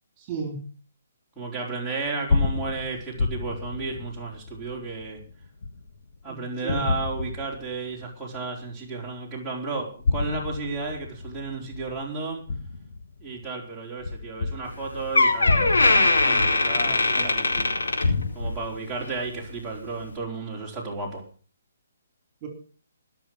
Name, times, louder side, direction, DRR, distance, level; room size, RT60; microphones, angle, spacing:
voice 1, 0.2-0.6 6.3-6.8 16.8-17.3 22.4-22.5, right 5 dB, 30° right, 2 dB, 4.6 m, -35 dB
voice 2, 1.4-5.2 6.2-12.4 13.2-17.7 18.3-21.2, right 3 dB, 5° right, -7 dB, 4.6 m, -33 dB
sound 1, 2.0-6.2 6.7-8.0 8.5-8.6 9.8-13.5 14.0-18.3, left 3 dB, 60° left, 2.0 m, -29 dB
Door, 14.7-14.8 15.1-18.6 19.0-19.3 20.0-20.1, left 2 dB, 85° left, 4.6 m, -21 dB
20.5 x 7.0 x 6.3 m, 0.40 s
hypercardioid pair, 150°, 0 cm